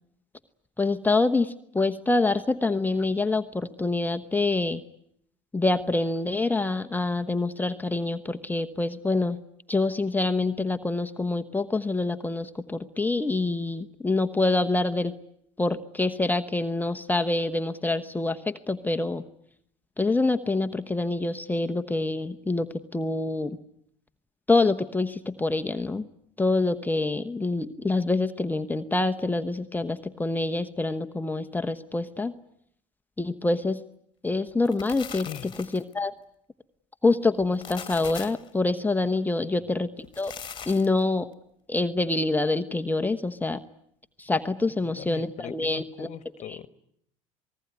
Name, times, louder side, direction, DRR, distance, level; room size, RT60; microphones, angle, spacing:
voice 1, 0.8-4.8 5.5-9.4 9.7-15.1 15.6-19.2 20.0-23.6 24.5-26.1 26.4-32.3 33.2-33.8 34.2-35.3 35.7-36.1 37.0-40.3 40.7-41.3 41.7-43.6 44.2-46.1 46.5-46.7, left 2 dB, 10° left, 1.0 m, -26 dB
sound 1, 34.5-35.9 37.4-38.5 40.0-41.0, left 7 dB, 30° left, 1.7 m, -40 dB
voice 2, 44.8-46.7, left 10 dB, 50° left, 1.4 m, -41 dB
27.5 x 20.0 x 9.6 m
hypercardioid pair, 80°, 15 cm